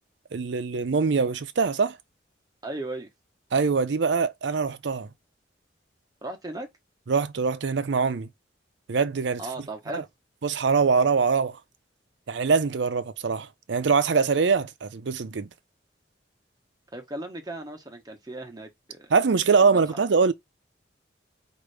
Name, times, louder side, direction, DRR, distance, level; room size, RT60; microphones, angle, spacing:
voice 1, 0.3-2.0 3.5-5.1 7.1-8.3 8.9-9.4 9.9-10.0 10.4-11.6 12.3-15.5 19.1-20.3, right 5 dB, 70° right, 0.5 m, -23 dB
voice 2, 2.6-3.1 6.2-6.7 9.4-10.0 16.9-19.1 19.6-20.0, right 2 dB, 20° right, 0.9 m, -36 dB
4.9 x 2.6 x 3.3 m
head